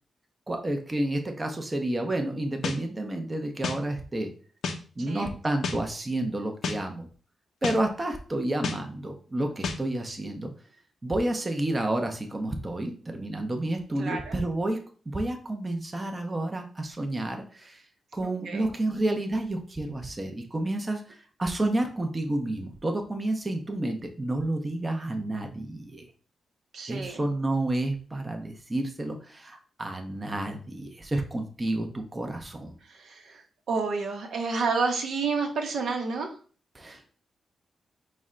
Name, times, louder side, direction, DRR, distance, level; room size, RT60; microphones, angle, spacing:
voice 1, 0.5-4.3 5.0-7.1 7.6-10.5 11.0-17.8 18.1-26.1 26.9-32.7 36.7-37.1, right 1 dB, 25° right, 4 dB, 0.6 m, -30 dB
sound 1, 2.6-2.8 3.6-3.8 4.6-4.8 5.6-5.8 6.6-6.8 7.6-7.8 8.6-8.8 9.6-9.8, left 4 dB, 80° left, 0.4 m, -30 dB
voice 2, 14.0-14.4 18.5-18.7 26.7-27.2 32.9-33.4 33.7-36.3, right 4 dB, 75° right, 2 dB, 0.7 m, -29 dB
4.2 x 2.1 x 3.6 m, 0.41 s
cardioid pair, 75°, 0 cm